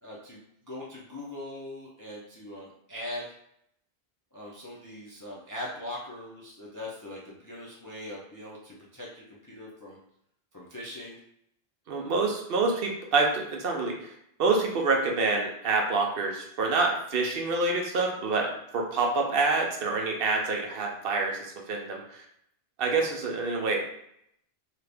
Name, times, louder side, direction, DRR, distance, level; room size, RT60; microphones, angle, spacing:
voice 1, 0.0-3.3 4.3-10.0 10.5-11.2 23.0-23.1, left 1 dB, 30° left, -4 dB, 0.4 m, -41 dB
voice 2, 11.9-14.1 14.4-22.2 22.8-23.8, right 3 dB, 65° right, 1 dB, 0.8 m, -27 dB
2.7 x 2.5 x 3.3 m, 0.72 s
omnidirectional pair, 1.1 m